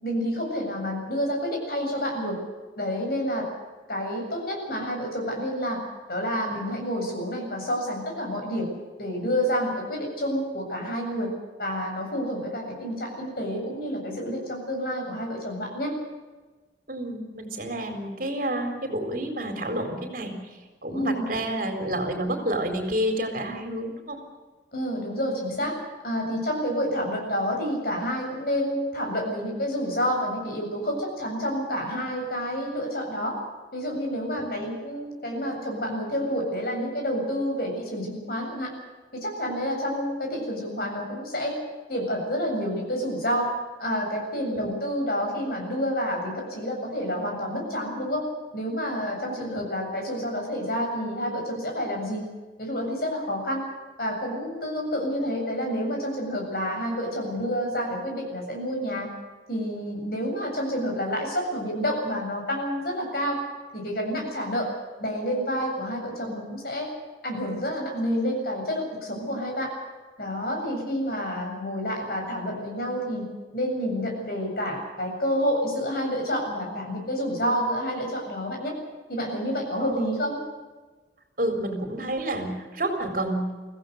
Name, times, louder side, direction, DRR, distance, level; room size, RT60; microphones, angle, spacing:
voice 1, 0.0-2.4 2.8-3.5 3.9-5.8 6.1-8.7 9.0-11.3 11.6-15.9 20.9-21.3 24.7-25.7 26.0-33.4 33.7-38.7 39.1-41.5 41.9-43.5 43.8-48.3 48.5-52.3 52.6-53.6 54.0-59.1 59.5-63.4 63.7-64.7 65.0-66.9 67.2-69.7 70.2-73.2 73.5-78.7 79.1-80.4, equal, 55° left, 1 dB, 7.6 m, -29 dB
voice 2, 16.9-24.2 25.5-25.7 34.3-34.6 44.5-44.7 49.3-49.6 79.8-80.1 81.4-83.5, right 1 dB, 50° right, 5 dB, 4.1 m, -30 dB
24.5 x 16.5 x 8.2 m, 1.3 s
head